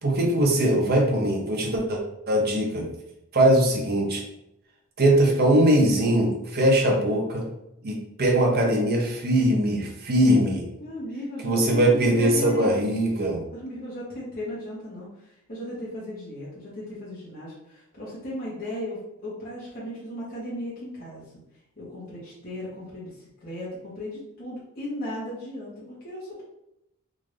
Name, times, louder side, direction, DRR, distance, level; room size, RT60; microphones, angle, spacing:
voice 1, 0.0-2.0 2.3-2.9 3.3-4.2 5.0-7.5 7.8-10.7 11.4-13.4, right 1 dB, 45° right, 0 dB, 0.8 m, -21 dB
voice 2, 10.8-12.9 13.5-15.1 15.5-21.3 21.8-26.4, left 1 dB, 45° left, -8 dB, 1.3 m, -36 dB
3.7 x 2.6 x 3.2 m, 0.84 s
head